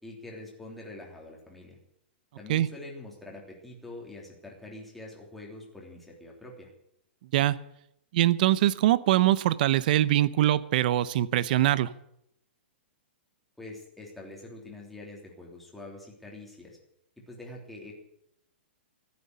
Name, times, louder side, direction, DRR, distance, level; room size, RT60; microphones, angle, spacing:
voice 1, 0.0-1.8 2.4-6.7 13.6-16.8 17.2-17.9, left 2 dB, ahead, -3 dB, 3.3 m, -45 dB
voice 2, 8.1-11.9, right 13 dB, 50° right, 18 dB, 0.7 m, -23 dB
14.0 x 9.6 x 9.5 m, 0.78 s
hypercardioid pair, 160°, 6 cm